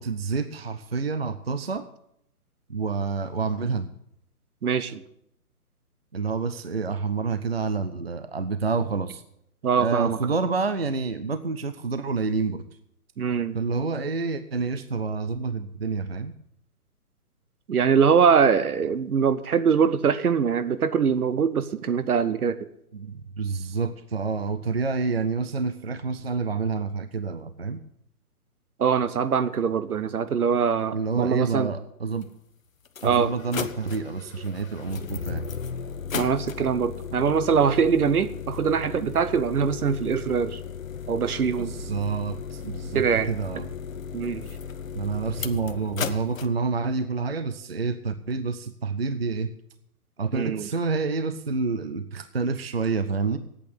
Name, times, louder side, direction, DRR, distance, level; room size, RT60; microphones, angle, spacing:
voice 1, 0.0-1.9 2.7-3.9 6.1-9.2 9.8-12.7 13.5-16.3 22.9-27.8 30.9-32.3 33.0-35.5 41.5-43.7 44.9-49.5 50.2-53.4, right 4 dB, 45° right, 12 dB, 0.5 m, -28 dB
voice 2, 4.6-5.0 9.6-10.2 13.2-13.6 17.7-22.7 28.8-31.7 33.0-33.3 36.1-40.6 41.1-41.7 42.9-43.3 44.1-44.5 50.3-50.7, right 6 dB, 75° right, 14 dB, 1.0 m, -23 dB
sound 1, 32.2-32.3 32.8-46.5, left 7 dB, 60° left, 0.9 m, -35 dB
8.6 x 8.5 x 8.9 m, 0.76 s
hypercardioid pair, 180°, 45 cm